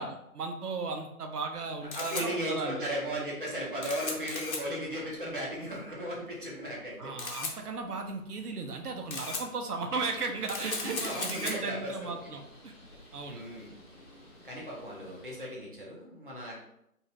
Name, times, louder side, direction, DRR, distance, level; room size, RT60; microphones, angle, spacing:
voice 1, 0.0-2.8 7.0-12.7 13.1-13.5, right 4 dB, 85° right, 4 dB, 0.7 m, -36 dB
Camera, 1.5-14.9, left 3 dB, 65° left, 0.9 m, -41 dB
voice 2, 1.9-7.1 10.8-12.3 13.2-13.8 14.4-16.6, equal, 35° right, -5 dB, 0.5 m, -36 dB
Bird, 9.9-15.5, equal, 40° left, 1.1 m, -55 dB
2.6 x 2.4 x 3.1 m, 0.78 s
figure-of-eight pair, 175°, 45 cm